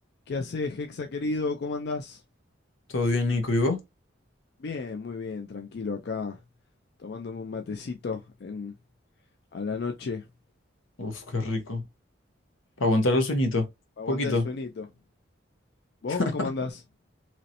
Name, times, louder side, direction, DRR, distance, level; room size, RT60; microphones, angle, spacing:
voice 1, 0.3-2.2 4.6-6.4 7.0-8.7 9.5-10.3 14.0-14.9 16.0-16.8, left 4 dB, 55° left, 0.4 m, -33 dB
voice 2, 2.9-3.8 11.0-11.8 12.8-13.6 14.1-14.4, left 2 dB, 85° left, 0.9 m, -25 dB
3.0 x 2.8 x 2.6 m
head